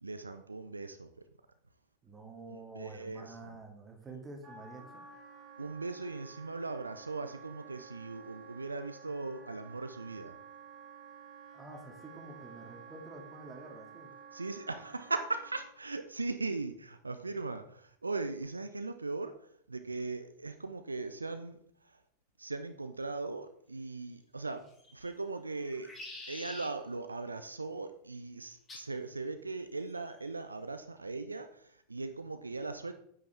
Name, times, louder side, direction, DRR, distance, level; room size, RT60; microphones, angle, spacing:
voice 1, 0.0-1.1 2.5-3.5 5.6-10.3 14.3-22.0 22.4-25.9 26.3-32.9, right 3 dB, 80° right, 9 dB, 0.7 m, -39 dB
voice 2, 2.0-5.0 11.5-14.1, right 3 dB, 15° right, 3 dB, 2.3 m, -48 dB
Wind instrument woodwind instrument, 4.4-15.7, right 5 dB, 30° right, 1.9 m, -52 dB
sound 1, 24.6-25.1 25.6-26.7 28.7-28.9 29.9-30.3, left 2 dB, 20° left, 4.4 m, -47 dB
9.8 x 8.8 x 3.4 m, 0.65 s
figure-of-eight pair, 90°, 0 cm